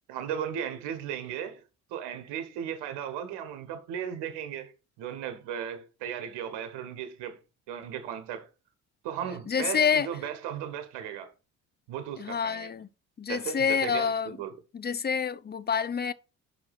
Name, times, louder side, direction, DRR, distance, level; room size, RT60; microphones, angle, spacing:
voice 1, 0.1-1.6 1.9-4.7 5.0-7.4 7.7-8.5 9.0-11.3 11.9-12.7 13.3-14.5, right 9 dB, 65° right, 1.4 m, -36 dB
voice 2, 9.5-10.1 12.2-12.9 13.2-14.4 14.7-16.1, left 6 dB, 20° left, 0.7 m, -27 dB
6.0 x 4.9 x 5.8 m
hypercardioid pair, 60°, 44 cm